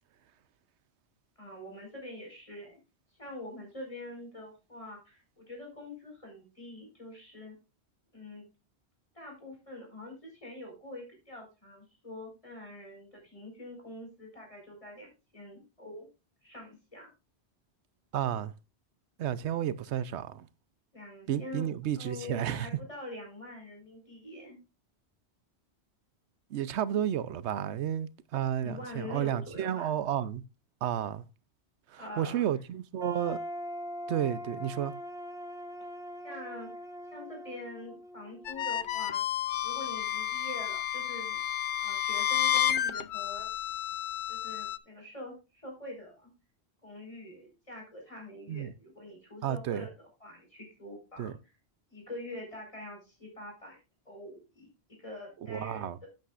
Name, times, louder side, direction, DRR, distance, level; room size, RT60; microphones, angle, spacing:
voice 1, 1.4-2.8 3.2-7.6 8.1-8.4 9.1-16.1 16.4-17.1 20.9-21.7 22.0-24.6 28.6-30.0 32.0-32.5 36.2-36.7 37.1-39.2 39.6-41.4 41.8-43.5 44.3-46.3 46.8-51.4 51.9-53.8 54.1-54.7 55.0-56.1, left 1 dB, 30° left, 5.1 m, -45 dB
voice 2, 18.1-18.5 19.2-20.5 21.3-22.7 26.5-30.4 30.8-31.2 31.9-33.4 34.1-34.9 48.5-48.7 49.4-49.9 51.2-51.3 55.5-56.0, right 10 dB, 90° right, 1.0 m, -32 dB
sound 1, 33.0-38.9, equal, 5° right, 1.1 m, -42 dB
sound 2, 38.4-44.8, left 10 dB, 60° left, 0.7 m, -31 dB
11.0 x 9.2 x 2.5 m
omnidirectional pair, 1.1 m